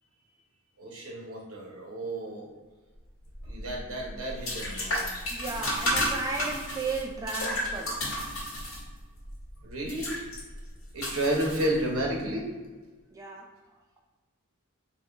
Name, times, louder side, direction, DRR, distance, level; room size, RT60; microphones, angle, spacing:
voice 1, 0.8-2.5 3.4-5.1 9.6-10.3 10.9-12.7, right 1 dB, 80° right, -2 dB, 1.0 m, -32 dB
sound 1, 3.3-12.2, equal, 75° left, 1.5 m, -33 dB
voice 2, 5.3-8.0 13.1-13.5, right 3 dB, 15° right, 0 dB, 0.3 m, -34 dB
3.6 x 2.9 x 3.4 m, 1.3 s
head